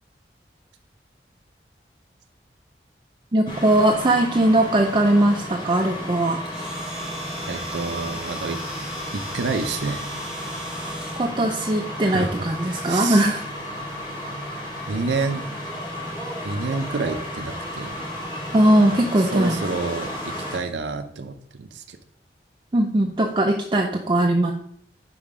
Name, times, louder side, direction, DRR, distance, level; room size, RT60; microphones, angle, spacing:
voice 1, 3.3-6.4 11.2-13.5 18.5-19.6 22.7-24.5, right 1 dB, 25° right, 1 dB, 0.5 m, -20 dB
sound 1, 3.5-20.6, equal, 30° left, 2.3 m, -33 dB
Domestic sounds home sounds, 6.5-11.3, right 1 dB, 5° right, 1.1 m, -39 dB
voice 2, 7.5-8.6 9.1-10.1 12.1-13.3 14.9-15.4 16.4-18.0 19.2-22.0, right 4 dB, 85° right, 6 dB, 0.6 m, -29 dB
5.5 x 5.0 x 4.8 m, 0.63 s
head